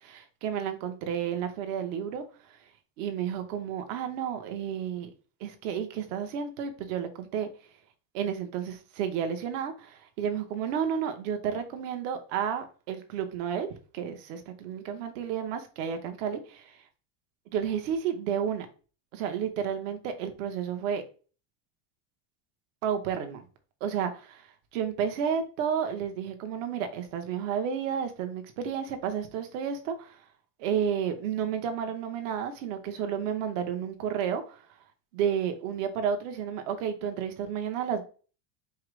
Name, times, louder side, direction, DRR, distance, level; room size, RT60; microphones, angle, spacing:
voice 1, 0.0-2.6 3.0-5.1 5.4-7.5 8.1-13.7 13.9-16.8 17.5-18.7 19.1-21.0 22.8-23.4 23.8-30.2 30.6-34.7 35.1-38.0, right 8 dB, 65° right, 0.9 m, -31 dB
4.6 x 2.0 x 4.7 m
cardioid pair, 175°, 41 cm